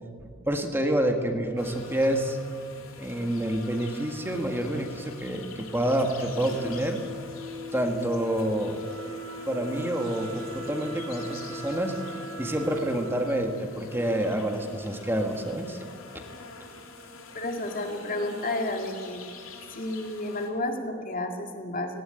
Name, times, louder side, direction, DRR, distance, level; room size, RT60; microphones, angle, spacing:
voice 1, 0.2-2.4 3.0-7.0 7.7-8.8 9.5-11.9 12.4-15.8, right 1 dB, 10° right, 4 dB, 1.6 m, -28 dB
sound 1, 1.6-20.5, left 3 dB, 75° left, 3.2 m, -45 dB
Wind instrument woodwind instrument, 6.2-15.0, equal, 65° right, 3.6 m, -40 dB
voice 2, 17.3-19.2 19.7-22.0, left 1 dB, 45° left, 3 dB, 2.3 m, -31 dB
18.0 x 17.0 x 9.8 m, 2.1 s
head